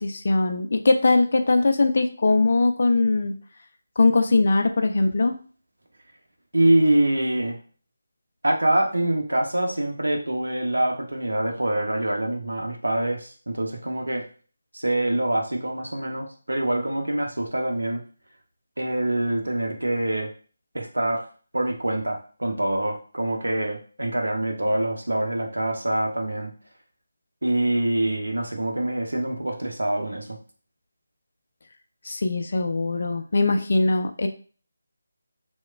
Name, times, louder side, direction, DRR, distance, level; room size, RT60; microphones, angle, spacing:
voice 1, 0.0-3.3 4.0-5.4 32.1-34.3, left 3 dB, 50° left, 6 dB, 0.3 m, -21 dB
voice 2, 6.5-7.6 8.4-14.2 14.7-18.0 18.8-20.3 20.7-21.3 21.5-26.5 27.4-30.3, right 1 dB, 75° right, 1 dB, 0.6 m, -25 dB
2.9 x 2.1 x 2.4 m, 0.40 s
figure-of-eight pair, 155°, 0 cm